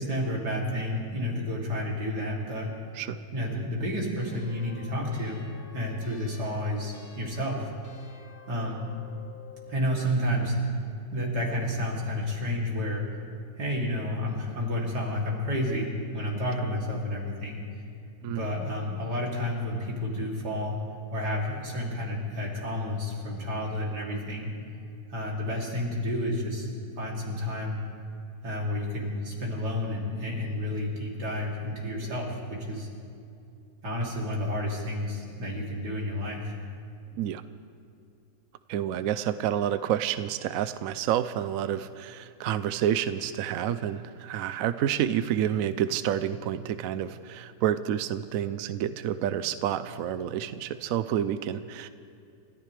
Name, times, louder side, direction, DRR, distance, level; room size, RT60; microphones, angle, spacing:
voice 1, 0.0-2.7 3.3-5.4 5.7-7.7 8.5-8.9 9.7-10.5 11.1-13.1 13.6-17.6 18.3-20.8 21.1-24.5 25.1-26.7 27.0-27.8 28.4-32.9 33.8-36.4, left 1 dB, 85° right, -3 dB, 3.6 m, -30 dB
sound 1, 4.2-9.9, left 6 dB, 40° left, 1.0 m, -51 dB
voice 2, 38.7-51.9, right 10 dB, 70° right, 12 dB, 0.9 m, -29 dB
30.0 x 14.0 x 3.3 m, 2.5 s
omnidirectional pair, 1.7 m